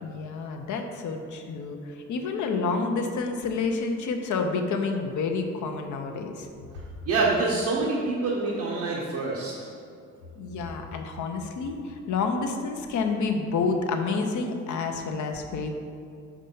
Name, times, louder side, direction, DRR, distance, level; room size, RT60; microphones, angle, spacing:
voice 1, 0.0-6.5 10.4-15.8, left 4 dB, 75° left, 4 dB, 0.8 m, -29 dB
voice 2, 7.0-9.7, right 3 dB, 85° right, -4 dB, 1.1 m, -26 dB
5.6 x 4.9 x 5.5 m, 2.4 s
cardioid pair, 90°, 30 cm